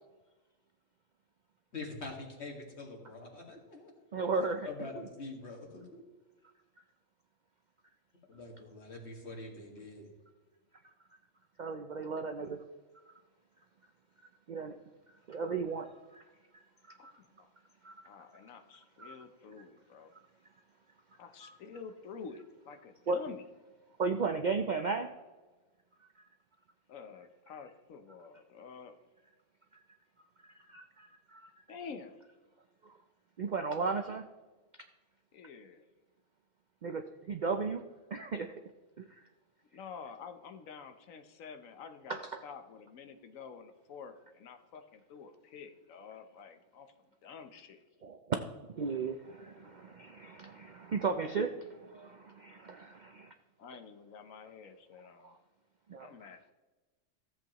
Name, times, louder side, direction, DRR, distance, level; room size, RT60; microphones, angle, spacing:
voice 1, 1.7-3.9 4.6-6.0 8.3-10.1, left 3 dB, 55° left, 1 dB, 2.1 m, -45 dB
voice 2, 4.1-4.7 11.6-12.6 14.5-14.7 15.3-16.2 17.0-17.1 17.8-17.9 19.0-19.1 21.4-21.6 23.1-23.2 24.0-25.1 30.7-31.5 33.4-34.2 36.8-37.0 37.3-37.8 38.1-38.5 39.0-39.1 42.1-42.4 48.0-48.2 48.8-53.3 55.9-56.1, right 4 dB, 60° right, 6 dB, 0.5 m, -35 dB
voice 3, 17.0-17.5 18.1-20.1 21.2-23.4 26.9-28.9 31.7-32.2 35.3-35.9 39.7-46.9 47.2-47.8 53.6-55.4 56.0-56.4, left 5 dB, 80° left, 8 dB, 1.2 m, -49 dB
14.5 x 7.8 x 3.0 m, 1.2 s
omnidirectional pair, 1.4 m